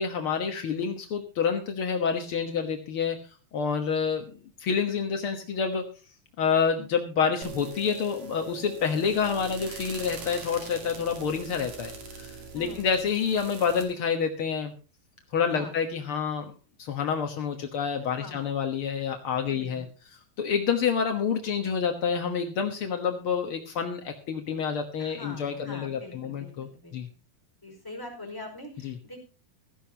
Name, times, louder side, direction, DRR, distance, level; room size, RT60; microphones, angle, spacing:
voice 1, 0.0-3.2 3.5-4.2 4.6-5.8 6.4-14.7 15.3-16.5 16.8-19.9 20.4-27.1 28.8-28.9, left 6 dB, 75° left, 5 dB, 1.2 m, -28 dB
sound 1, 7.4-13.8, right 5 dB, 45° right, 3.4 m, -42 dB
voice 2, 12.5-12.9 15.5-15.8 18.0-18.6 19.5-19.8 25.0-26.9 27.6-29.2, left 2 dB, 5° left, 0 dB, 4.7 m, -43 dB
16.5 x 14.0 x 2.9 m, 0.35 s
omnidirectional pair, 4.5 m